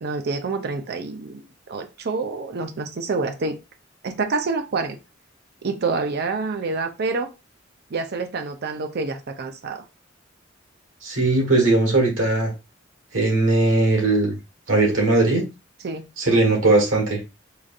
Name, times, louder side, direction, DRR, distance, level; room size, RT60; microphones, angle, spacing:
voice 1, 0.0-1.4 1.7-3.6 4.0-5.0 5.6-7.3 7.9-9.8 15.8-16.1, right 4 dB, 55° right, 6 dB, 0.5 m, -27 dB
voice 2, 11.0-12.5 13.1-14.4 14.7-15.4 16.2-17.2, right 2 dB, 85° right, 0 dB, 1.5 m, -19 dB
4.9 x 2.6 x 2.4 m, 0.27 s
head